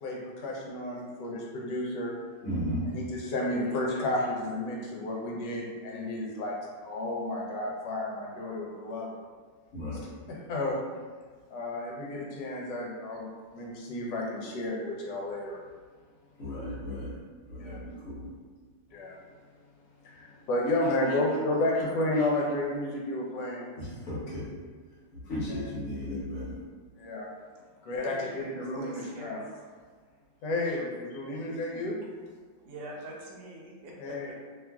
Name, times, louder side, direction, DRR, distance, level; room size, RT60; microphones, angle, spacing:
voice 1, 0.0-2.1 2.9-6.6 6.8-9.1 10.3-10.8 11.5-15.6 17.6-17.8 18.9-19.2 20.0-23.7 25.5-25.6 27.0-27.3 27.8-29.5 30.4-32.0 34.0-34.3, left 1 dB, 75° left, -2 dB, 1.2 m, -32 dB
voice 2, 2.4-2.9 9.7-10.1 16.4-17.2 17.5-18.2 22.2-22.3 23.8-24.5 25.1-26.5, left 1 dB, 55° left, -7 dB, 1.1 m, -35 dB
voice 3, 28.0-29.5 31.4-31.5 32.6-34.3, right 1 dB, 70° right, -2 dB, 1.0 m, -45 dB
3.0 x 2.4 x 2.2 m, 1.5 s
omnidirectional pair, 1.9 m